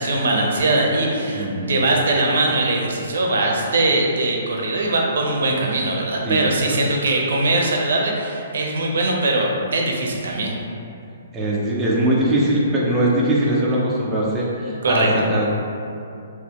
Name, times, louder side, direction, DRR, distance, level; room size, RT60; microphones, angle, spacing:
voice 1, 0.0-10.5 14.8-15.1, right 2 dB, 70° right, 0 dB, 0.6 m, -21 dB
voice 2, 1.4-1.9 6.3-6.4 6.7-6.8 11.3-15.5, right 1 dB, 10° right, -6 dB, 0.4 m, -21 dB
3.5 x 2.9 x 2.9 m, 2.6 s
hypercardioid pair, 170°, 0 cm